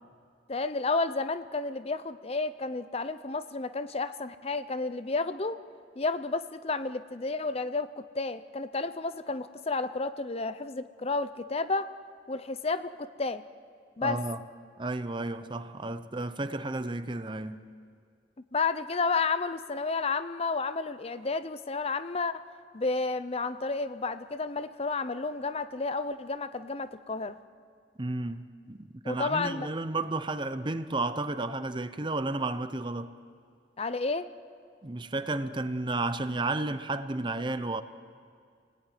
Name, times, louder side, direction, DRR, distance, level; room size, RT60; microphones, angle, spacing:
voice 1, 0.5-5.6 6.0-11.9 12.3-13.4 14.0-14.2 18.5-22.4 22.7-27.4 29.0-29.7 33.8-34.3, left 3 dB, 35° left, 0.7 m, -31 dB
voice 2, 14.0-14.4 14.8-17.7 28.0-33.1 34.8-37.8, right 2 dB, 25° right, 0.8 m, -32 dB
29.0 x 19.0 x 9.3 m
head